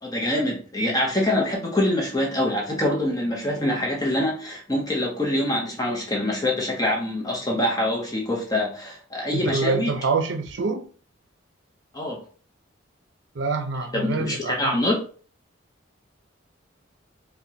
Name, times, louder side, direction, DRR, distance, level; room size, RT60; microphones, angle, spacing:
voice 1, 0.0-9.9 11.9-12.2 13.9-15.0, left 1 dB, 20° left, 0.7 m, -25 dB
voice 2, 9.3-10.8 13.3-14.8, right 4 dB, 65° right, 0.6 m, -26 dB
4.6 x 2.2 x 2.7 m
head